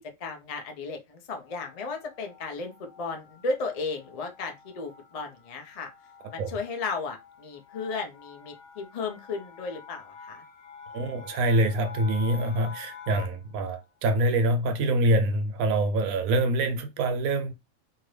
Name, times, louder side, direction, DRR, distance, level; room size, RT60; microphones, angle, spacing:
voice 1, 0.2-5.9 6.3-10.4, left 4 dB, 50° left, 0.4 m, -34 dB
sound 1, 1.4-13.5, left 6 dB, 65° left, 0.9 m, -48 dB
voice 2, 10.9-17.5, right 1 dB, 85° right, 1.1 m, -25 dB
2.7 x 2.5 x 3.1 m
omnidirectional pair, 1.4 m